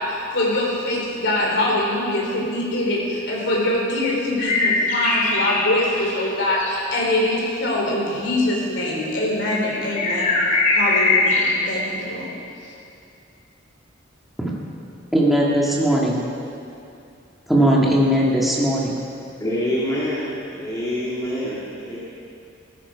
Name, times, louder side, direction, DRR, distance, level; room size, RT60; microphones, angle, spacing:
voice 1, 0.0-10.3 10.7-12.3, left 1 dB, 65° left, -3 dB, 3.7 m, -23 dB
sound 1, 4.4-6.8 9.7-11.5, left 3 dB, 45° left, 2.5 m, -21 dB
voice 2, 15.1-16.2 17.5-19.0, right 1 dB, ahead, -4 dB, 1.9 m, -18 dB
voice 3, 19.4-22.0, equal, 20° left, -8 dB, 2.2 m, -26 dB
15.5 x 13.5 x 5.0 m, 2.6 s
head